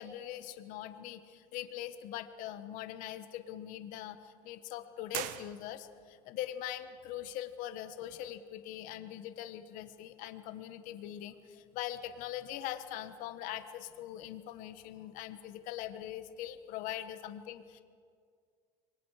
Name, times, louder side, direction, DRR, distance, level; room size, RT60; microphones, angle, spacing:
voice 1, 0.0-17.8, left 12 dB, 70° left, 10 dB, 1.4 m, -42 dB
sound 1, 5.1-6.2, right 14 dB, 70° right, 1.0 m, -41 dB
26.5 x 23.0 x 5.0 m, 2.2 s
supercardioid pair, 115°, 14 cm